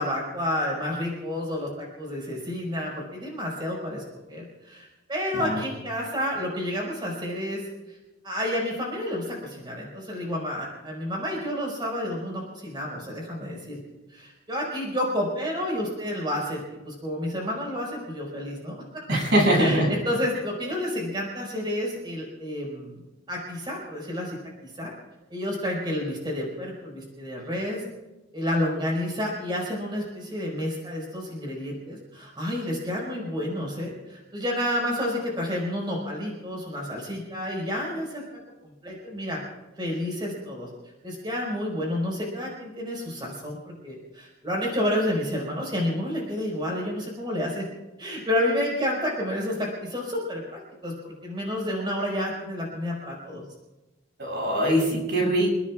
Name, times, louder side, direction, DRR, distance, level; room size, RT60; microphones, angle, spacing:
voice 1, 0.0-4.0 4.3-8.0 8.2-13.8 14.1-19.1 19.6-23.0 23.3-24.9 25.3-27.8 28.3-38.2 38.6-39.4 39.8-40.7 41.0-47.6 48.0-50.9 51.2-53.4, left 1 dB, 25° right, -2 dB, 5.2 m, -30 dB
voice 2, 19.1-19.9 54.2-55.5, right 1 dB, 60° right, -2 dB, 7.1 m, -22 dB
29.5 x 17.5 x 2.4 m, 1.1 s
head